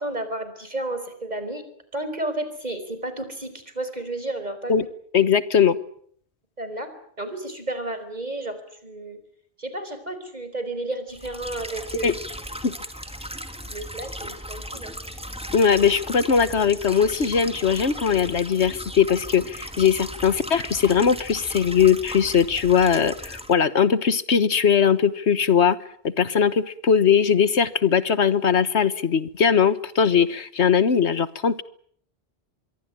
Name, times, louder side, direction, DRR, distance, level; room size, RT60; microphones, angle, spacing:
voice 1, 0.0-1.6 1.9-4.7 6.6-6.9 7.2-9.2 9.6-12.1 13.7-14.9, right 2 dB, 40° right, 10 dB, 4.9 m, -32 dB
voice 2, 5.1-5.8 12.0-12.1 12.6-12.7 15.5-25.8 26.0-31.6, left 7 dB, 85° left, 14 dB, 1.6 m, -20 dB
sound 1, 11.1-23.5, equal, 5° right, 2.3 m, -37 dB
25.5 x 23.0 x 8.9 m, 0.63 s
omnidirectional pair, 1.1 m